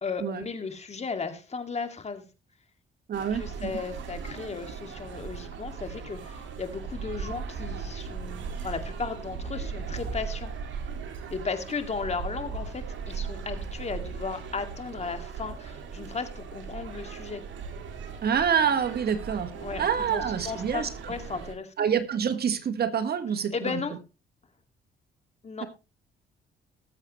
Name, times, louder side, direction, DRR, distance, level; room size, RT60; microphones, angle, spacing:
voice 1, 0.0-2.3 3.3-10.5 11.3-17.4 19.6-21.7 23.5-23.9 25.4-25.7, left 5 dB, 35° left, 7 dB, 2.2 m, -35 dB
voice 2, 3.1-3.7 18.2-19.5 19.8-21.1 21.8-23.8, right 7 dB, 50° right, 10 dB, 1.5 m, -27 dB
sound 1, 3.1-21.6, right 5 dB, 70° right, 2.6 m, -38 dB
19.5 x 7.7 x 3.1 m, 0.28 s
cardioid pair, 90°, 20 cm